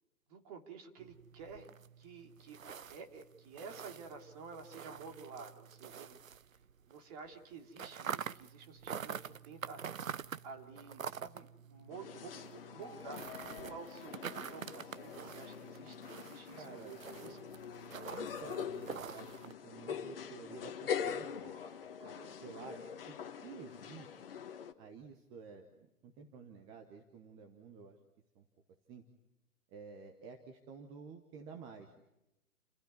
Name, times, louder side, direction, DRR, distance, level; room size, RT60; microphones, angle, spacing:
voice 1, 0.3-1.7 2.0-6.2 6.9-9.8 10.4-17.4 22.0-22.7, right 5 dB, 25° right, 3 dB, 3.1 m, -51 dB
sound 1, 1.0-7.0 7.2-19.5, right 7 dB, 60° right, 0.9 m, -47 dB
sound 2, 11.9-24.7, left 7 dB, 40° left, 1.7 m, -44 dB
voice 2, 16.6-16.9 17.2-17.4 18.1-21.6 22.4-24.4 24.8-25.7 26.0-28.0 28.3-28.4 28.9-29.0 29.7-32.0, right 5 dB, 10° right, 4 dB, 0.9 m, -51 dB
30.0 x 16.0 x 9.4 m, 0.90 s
figure-of-eight pair, 140°, 45 cm